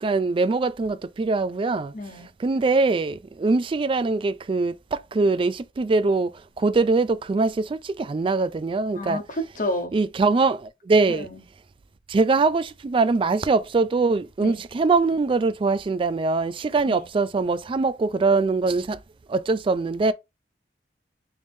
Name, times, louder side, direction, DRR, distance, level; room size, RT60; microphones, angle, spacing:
voice 1, 0.0-1.9 2.4-6.3 6.6-9.2 9.9-11.3 12.1-19.0 19.3-20.1, right 3 dB, 30° right, 0.3 m, -22 dB
voice 2, 1.9-2.3 8.9-9.9 11.1-11.4 14.4-14.6 16.8-17.0, left 1 dB, 50° left, 1.0 m, -31 dB
3.5 x 3.3 x 2.6 m
head